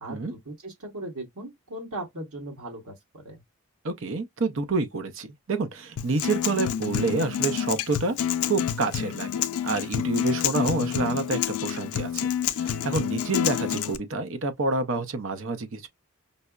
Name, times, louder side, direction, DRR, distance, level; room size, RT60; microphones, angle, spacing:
voice 1, 0.0-3.4, right 1 dB, 80° right, 1.3 m, -38 dB
voice 2, 3.8-9.3 9.6-12.3 12.5-15.9, right 3 dB, 60° right, 0.6 m, -28 dB
Acoustic guitar, 6.0-14.0, left 9 dB, 85° left, 0.4 m, -28 dB
5.3 x 2.0 x 2.3 m
head